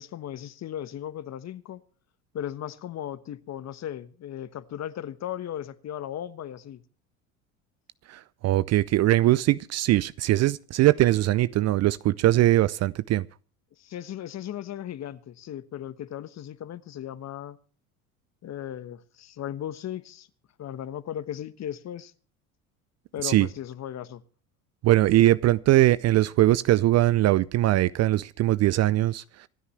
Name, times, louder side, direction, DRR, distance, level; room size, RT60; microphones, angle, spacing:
voice 1, 0.0-1.8 2.3-6.8 13.8-17.6 18.4-20.3 20.6-22.1 23.1-24.2, left 11 dB, 40° left, 1.2 m, -36 dB
voice 2, 8.1-13.3 23.2-23.5 24.8-29.2, right 15 dB, 40° right, 0.5 m, -21 dB
26.0 x 9.7 x 3.2 m
hypercardioid pair, 70°, 43 cm